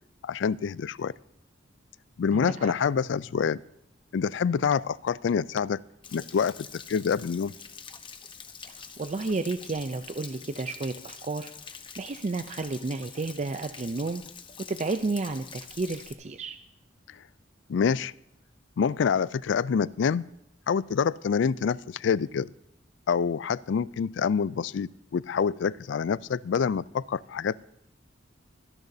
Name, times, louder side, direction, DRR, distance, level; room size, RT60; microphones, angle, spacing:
voice 1, 0.2-1.1 2.2-3.6 4.1-5.8 6.1-7.5 17.7-18.1 18.8-20.3 20.7-22.5 23.1-27.6, left 6 dB, 65° left, 21 dB, 0.3 m, -26 dB
voice 2, 2.3-2.7 8.7-14.2 14.7-16.6, right 3 dB, 35° right, 8 dB, 0.5 m, -32 dB
Stream / Splash splatter / Trickle dribble, 6.0-16.1, left 6 dB, 25° left, 0.9 m, -46 dB
26.0 x 10.5 x 2.7 m, 0.83 s
head